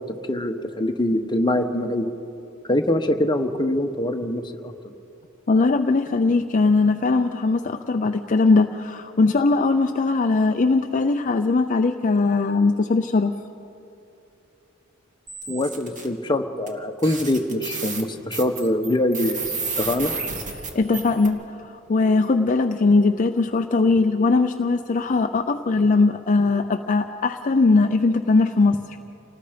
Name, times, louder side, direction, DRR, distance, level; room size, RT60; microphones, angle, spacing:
voice 1, 0.3-2.1 2.7-4.7 15.5-19.4 19.8-20.1, left 1 dB, 20° left, 5 dB, 1.1 m, -23 dB
voice 2, 5.5-13.3 20.7-29.0, left 3 dB, 40° left, 6 dB, 0.5 m, -20 dB
sound 1, 15.3-16.1 16.7-16.8 17.0-21.3, right 4 dB, 40° right, 2.1 m, -31 dB
28.0 x 19.0 x 5.1 m, 2.8 s
head